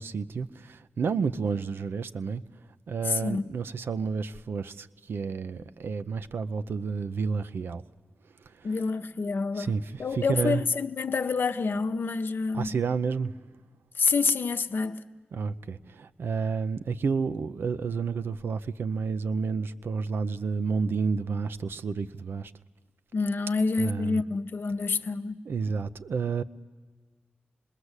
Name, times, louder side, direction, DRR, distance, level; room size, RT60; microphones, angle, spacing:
voice 1, 0.0-2.4 2.9-7.8 8.5-8.7 9.6-10.6 12.5-13.3 15.3-22.5 23.8-24.2 25.5-26.4, right 5 dB, 75° right, 0.7 m, -30 dB
voice 2, 3.0-3.5 8.6-9.7 10.0-12.8 13.9-15.0 23.1-25.4, left 4 dB, 65° left, 0.9 m, -27 dB
26.0 x 21.0 x 8.2 m
cardioid pair, 45°, 4 cm